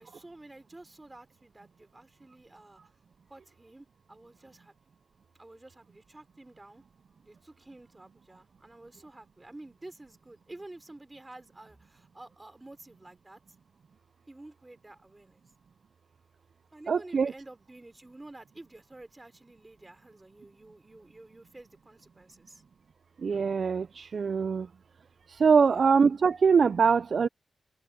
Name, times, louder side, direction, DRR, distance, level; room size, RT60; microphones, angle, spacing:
voice 1, 0.0-2.8 3.3-4.7 5.4-6.8 7.2-13.4 14.3-15.4 16.7-22.6 25.6-25.9, right 2 dB, 20° right, 3.6 m, -50 dB
voice 2, 16.9-17.3 23.2-24.7 25.4-27.3, right 5 dB, 60° right, 0.5 m, -23 dB
wide cardioid pair, 105°, 0 cm